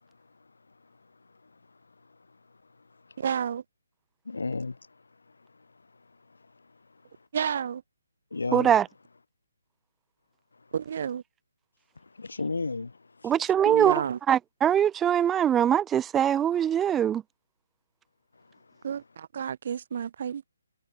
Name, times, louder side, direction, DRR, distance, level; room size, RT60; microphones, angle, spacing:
voice 1, 3.2-3.6 7.3-7.8 10.7-11.2 13.6-14.2 18.8-20.4, right 8 dB, 50° right, 2.2 m, -30 dB
voice 2, 4.2-4.8 8.3-8.7 12.1-13.3, left 3 dB, 85° left, 1.7 m, -32 dB
voice 3, 8.5-8.9 13.2-17.2, right 9 dB, 10° right, 1.0 m, -23 dB
hypercardioid pair, 160°, 0 cm